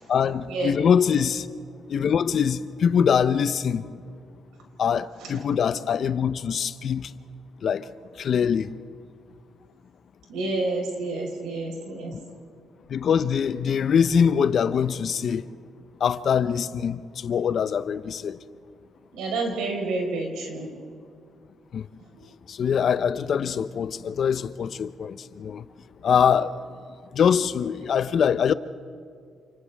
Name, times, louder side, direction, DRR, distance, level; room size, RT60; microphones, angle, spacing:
voice 1, 0.1-1.5 1.9-3.8 4.8-7.1 7.6-7.8 8.2-8.7 12.9-15.4 16.0-18.4 21.7-21.8 22.5-25.6 26.0-26.5 27.1-28.5, left 7 dB, 55° left, 0.7 m, -23 dB
voice 2, 10.3-12.2 19.1-20.7 22.1-22.2, right 3 dB, 90° right, 4.8 m, -29 dB
30.0 x 28.5 x 3.6 m
cardioid pair, 90°, 0 cm